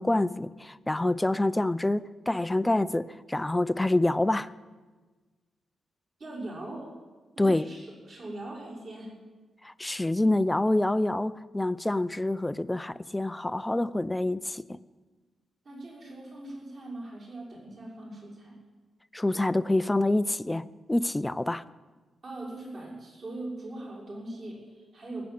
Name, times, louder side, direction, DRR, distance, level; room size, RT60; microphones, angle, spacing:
voice 1, 0.0-4.5 7.4-7.7 9.6-14.8 19.1-21.6, left 1 dB, 10° left, 0.4 m, -27 dB
voice 2, 6.2-6.9 7.3-9.1 15.6-18.6 22.2-25.2, right 2 dB, 40° right, 5.8 m, -40 dB
19.0 x 7.9 x 8.6 m
wide cardioid pair, 130°, 0 cm